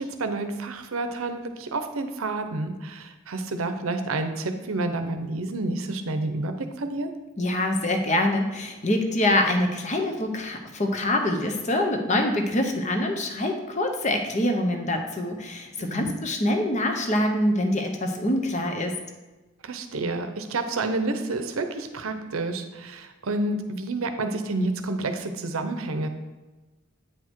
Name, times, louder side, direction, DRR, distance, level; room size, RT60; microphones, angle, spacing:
voice 1, 0.0-7.1 15.8-16.1 19.6-26.1, right 2 dB, 80° right, 7 dB, 0.7 m, -29 dB
voice 2, 7.4-18.9, left 1 dB, 35° left, 4 dB, 0.8 m, -25 dB
8.8 x 4.8 x 4.5 m, 1.2 s
head